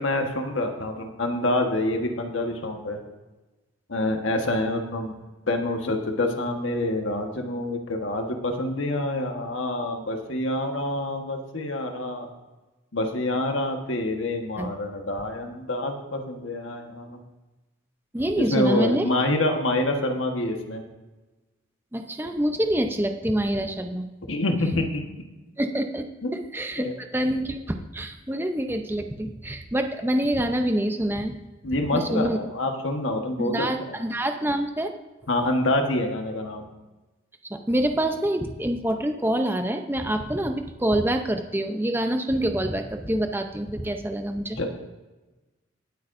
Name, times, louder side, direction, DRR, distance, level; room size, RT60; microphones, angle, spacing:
voice 1, 0.0-3.0 3.9-5.1 5.5-12.3 12.9-17.2 18.5-20.8 24.3-25.0 26.2-26.3 26.8-26.9 31.6-34.0 35.3-36.6 44.6-44.7, left 1 dB, 75° left, 3 dB, 1.4 m, -27 dB
voice 2, 18.1-19.1 21.9-24.1 25.6-26.0 26.3-31.4 31.8-32.4 33.4-34.9 37.5-44.6, right 1 dB, 10° right, 5 dB, 0.6 m, -26 dB
19.0 x 8.5 x 2.6 m, 1.1 s
head